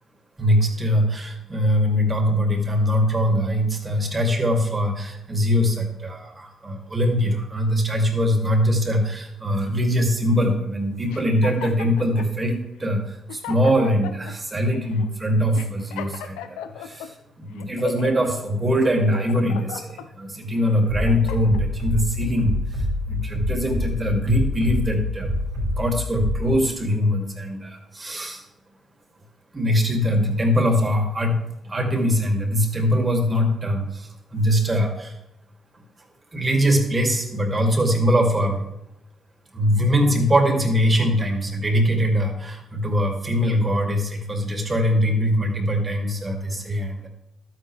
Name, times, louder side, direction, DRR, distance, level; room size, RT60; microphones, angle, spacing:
voice 1, 0.4-25.3 25.7-28.4 29.5-35.1 36.3-38.7 39.5-47.1, equal, 30° right, 2 dB, 2.7 m, -22 dB
sound 1, 11.1-12.3 12.9-13.0 13.3-14.3 14.9-15.1 15.5-17.1 17.6-18.3 18.8-20.1 20.6-21.6, left 10 dB, 85° left, 0.6 m, -36 dB
Bass drum, 20.9-26.5, left 1 dB, 85° right, 3.6 m, -26 dB
12.0 x 9.1 x 3.4 m, 0.87 s
hypercardioid pair, 50°, 0 cm